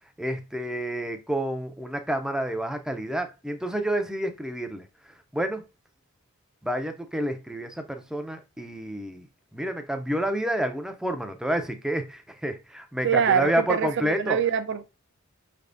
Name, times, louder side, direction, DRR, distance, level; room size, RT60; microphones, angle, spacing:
voice 1, 0.2-4.8 5.3-5.6 6.6-9.3 9.5-14.4, right 1 dB, 5° right, 0.5 m, -29 dB
voice 2, 13.0-14.8, right 7 dB, 60° right, 0.5 m, -24 dB
5.6 x 3.4 x 2.5 m
head